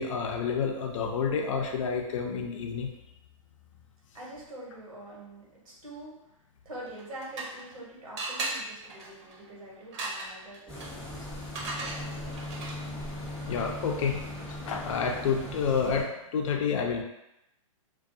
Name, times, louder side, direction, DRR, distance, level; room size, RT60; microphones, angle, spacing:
voice 1, 0.0-2.9 13.5-14.2 14.7-17.0, left 6 dB, 65° left, 2 dB, 0.5 m, -29 dB
voice 2, 4.1-6.2 6.6-11.3 11.6-12.3, right 1 dB, 90° right, -4 dB, 1.0 m, -45 dB
sound 1, 6.9-7.8 8.2-13.0, right 2 dB, 55° right, 0.7 m, -38 dB
sound 2, 10.7-16.0, left 1 dB, 5° left, 0.6 m, -39 dB
2.3 x 2.2 x 2.6 m, 0.89 s
hypercardioid pair, 130°, 18 cm